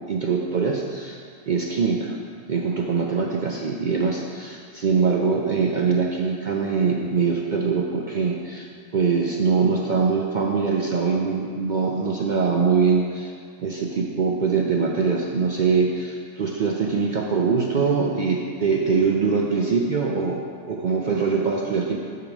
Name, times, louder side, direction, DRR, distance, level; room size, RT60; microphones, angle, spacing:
voice 1, 0.1-1.2 1.5-2.2 2.5-8.7 8.9-13.3 13.6-22.0, right 5 dB, 55° right, 0 dB, 0.5 m, -23 dB
8.7 x 3.8 x 6.0 m, 2.2 s
omnidirectional pair, 1.3 m